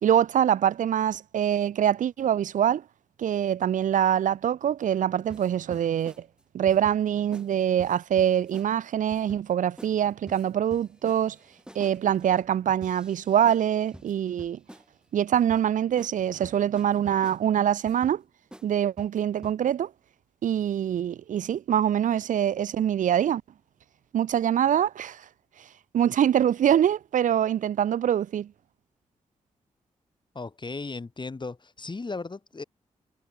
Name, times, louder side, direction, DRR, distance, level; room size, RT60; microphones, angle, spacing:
voice 1, 0.0-2.8 3.2-6.3 6.5-11.4 11.7-14.6 15.1-18.2 18.6-19.9 20.4-23.4 24.1-25.2 25.9-28.5, right 10 dB, 70° right, 0.6 m, -24 dB
sound 1, 5.3-6.2 6.7-7.0 7.3-7.5 7.8-8.7 9.1-9.5 9.8-10.0 10.3-14.9 15.3-15.6 16.0-16.1 16.4-17.4 17.9-18.2 18.5-18.7 19.0-19.6, right 1 dB, 5° right, 3.4 m, -48 dB
voice 2, 30.3-32.6, left 3 dB, 35° left, 2.3 m, -36 dB
supercardioid pair, 50°, 14 cm